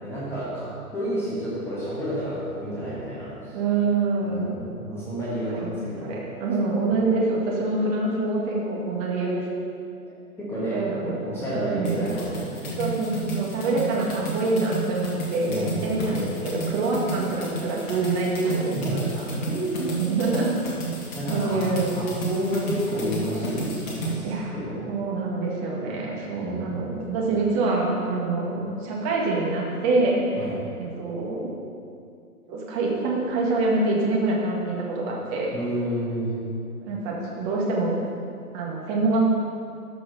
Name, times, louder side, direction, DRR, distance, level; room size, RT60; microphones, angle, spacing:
voice 1, 0.0-3.6 4.2-6.2 10.4-12.8 15.5-16.4 18.7-19.8 21.1-21.7 22.0-24.9 26.4-26.9 30.4-30.6 35.5-36.3, equal, 5° left, -10 dB, 1.8 m, -30 dB
voice 2, 3.5-4.5 5.5-9.5 10.5-11.2 11.5-12.1 12.8-19.3 19.8-20.5 21.3-21.9 24.2-24.5 24.9-30.2 30.8-31.5 32.5-35.5 36.8-38.0 38.5-39.3, right 3 dB, 25° right, -3 dB, 1.8 m, -26 dB
sound 1, 11.8-24.1, right 2 dB, 30° left, 2.3 m, -32 dB
13.0 x 5.8 x 5.6 m, 2.5 s
hypercardioid pair, 145°, 45 cm